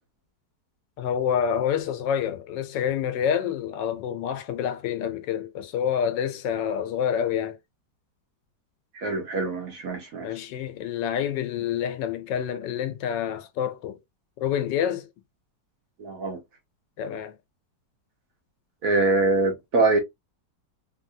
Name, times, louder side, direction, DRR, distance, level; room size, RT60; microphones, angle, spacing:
voice 1, 1.0-7.6 10.2-14.0 14.4-15.1 17.0-17.3, left 8 dB, 85° left, 1.3 m, -27 dB
voice 2, 8.9-10.3 16.0-16.4 18.8-20.0, right 3 dB, 55° right, 1.2 m, -24 dB
3.2 x 2.6 x 2.6 m
omnidirectional pair, 1.9 m